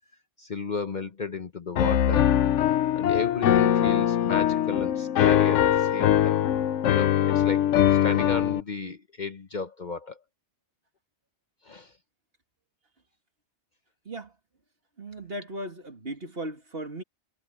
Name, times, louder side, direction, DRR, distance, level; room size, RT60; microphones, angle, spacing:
voice 1, 0.4-2.3 2.9-6.5 6.9-10.2 11.6-11.9, left 4 dB, 45° left, 0.9 m, -34 dB
Piano, 1.8-8.6, left 11 dB, 85° left, 1.0 m, -22 dB
voice 2, 15.0-17.0, right 1 dB, 55° right, 3.0 m, -37 dB
omnidirectional pair, 1.2 m